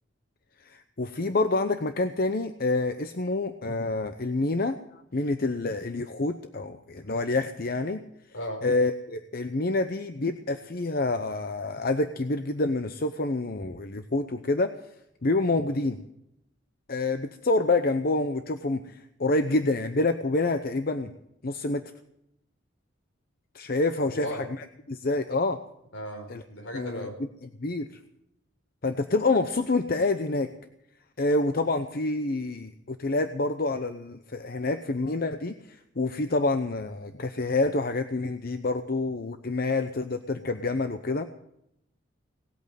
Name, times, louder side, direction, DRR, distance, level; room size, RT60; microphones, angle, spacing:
voice 1, 0.6-4.8 5.1-8.0 8.6-14.7 15.2-16.0 16.9-21.1 21.4-21.8 23.5-25.6 26.3-26.4 26.7-27.1 27.6-27.9 28.8-30.5 31.2-41.3, left 2 dB, 50° left, 9 dB, 0.8 m, -27 dB
voice 2, 8.3-8.6 24.0-24.4 25.9-27.1, equal, 75° left, 2 dB, 4.8 m, -36 dB
18.5 x 8.5 x 9.1 m, 0.78 s
head